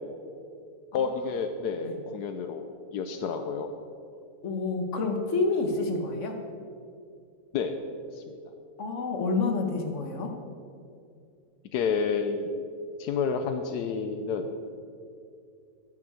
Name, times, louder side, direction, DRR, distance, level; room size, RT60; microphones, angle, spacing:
voice 1, 0.9-3.7 7.5-7.8 8.1-8.4 11.7-12.6 13.0-14.5, left 5 dB, 80° left, 7 dB, 1.2 m, -30 dB
voice 2, 4.4-6.4 8.8-10.3, left 3 dB, 50° left, 3 dB, 1.5 m, -28 dB
11.0 x 10.5 x 4.9 m, 2.4 s
omnidirectional pair, 1.7 m